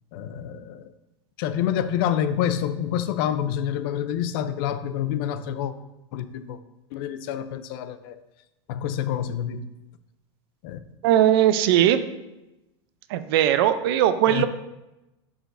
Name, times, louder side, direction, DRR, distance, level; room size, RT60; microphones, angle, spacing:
voice 1, 0.1-0.9 1.4-5.7 6.1-6.6 6.9-8.2 8.7-9.7 10.6-10.8 14.3-14.5, left 10 dB, 55° left, 0.5 m, -27 dB
voice 2, 11.0-12.0 13.1-14.5, right 11 dB, 60° right, 0.5 m, -19 dB
11.0 x 5.0 x 2.6 m
supercardioid pair, 150°, 14 cm